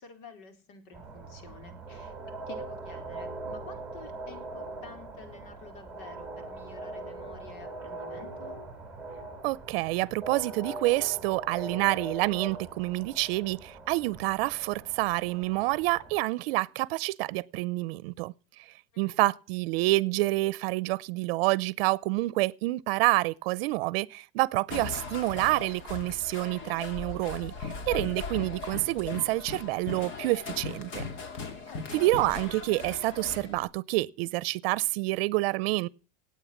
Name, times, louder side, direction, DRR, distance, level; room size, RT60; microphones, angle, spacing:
voice 1, 0.0-2.1 2.5-8.6 19.0-19.2 31.7-32.1, left 5 dB, 65° left, 4.2 m, -50 dB
sound 1, 0.9-16.2, right 2 dB, 5° right, 4.7 m, -41 dB
voice 2, 9.4-18.3 19.0-31.0 31.9-35.9, right 20 dB, 75° right, 0.7 m, -28 dB
sound 2, 24.7-33.7, left 4 dB, 40° left, 2.4 m, -38 dB
18.0 x 8.8 x 7.2 m
supercardioid pair, 150°, 29 cm